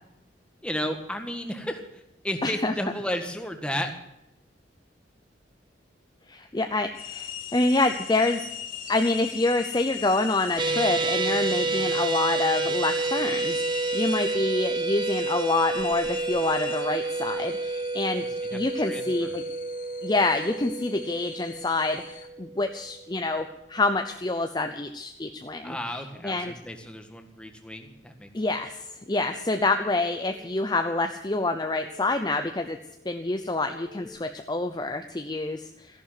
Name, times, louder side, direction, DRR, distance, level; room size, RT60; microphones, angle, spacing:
voice 1, 0.6-3.9 18.5-18.6 18.9-19.4 25.6-28.3, equal, 5° left, 5 dB, 1.6 m, -33 dB
voice 2, 2.4-2.7 6.3-8.4 8.9-18.2 18.5-19.4 20.0-25.8 26.2-26.5 28.3-32.8 33.0-36.0, left 2 dB, 20° left, 6 dB, 0.7 m, -27 dB
sound 1, 6.9-22.3, left 9 dB, 45° left, 1.3 m, -39 dB
sound 2, 10.6-22.9, right 3 dB, 25° right, 0.6 m, -29 dB
sound 3, 28.6-34.1, left 2 dB, 75° left, 1.7 m, -51 dB
14.5 x 11.5 x 7.6 m, 0.86 s
head